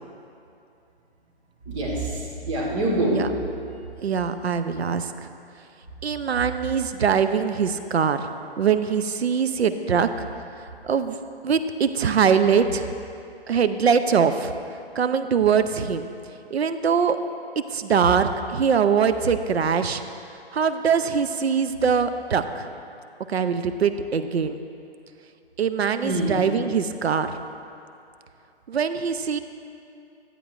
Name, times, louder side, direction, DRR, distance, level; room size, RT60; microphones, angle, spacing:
voice 1, 1.7-3.1 26.0-26.3, right 1 dB, 30° right, -4 dB, 1.5 m, -25 dB
voice 2, 4.0-5.1 6.0-8.3 8.6-10.3 10.8-11.2 11.4-12.9 13.5-14.5 15.0-16.1 16.5-17.2 17.7-20.0 20.5-22.7 23.3-24.6 25.6-27.3 28.7-29.4, right 6 dB, 75° right, 9 dB, 0.5 m, -22 dB
11.0 x 8.3 x 2.5 m, 2.6 s
figure-of-eight pair, 135°, 32 cm